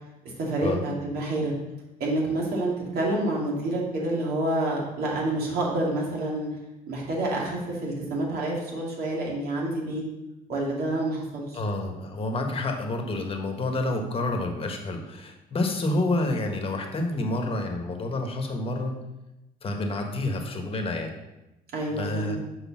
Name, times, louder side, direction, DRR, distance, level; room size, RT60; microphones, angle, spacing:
voice 1, 0.4-1.5 2.0-6.5 6.9-10.0 10.5-11.6 21.7-22.4, right 1 dB, 65° right, -3 dB, 2.7 m, -28 dB
voice 2, 11.5-19.0 19.6-21.1 21.9-22.4, left 2 dB, 35° left, 3 dB, 1.4 m, -29 dB
6.4 x 4.8 x 6.1 m, 0.98 s
cardioid pair, 110°, 17 cm